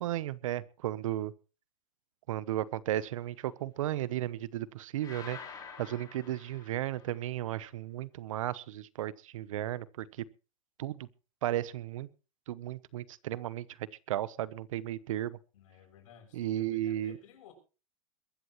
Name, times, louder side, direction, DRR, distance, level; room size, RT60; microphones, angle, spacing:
voice 1, 0.0-1.3 2.3-10.2 10.8-11.1 11.4-12.1 12.5-15.4 16.3-17.2, right 13 dB, 75° right, 19 dB, 1.0 m, -35 dB
sound 1, 5.0-7.3, left 7 dB, 20° left, 3.8 m, -48 dB
voice 2, 15.5-17.5, left 9 dB, 70° left, 4 dB, 7.1 m, -56 dB
22.0 x 13.5 x 3.1 m, 0.34 s
supercardioid pair, 145°, 17 cm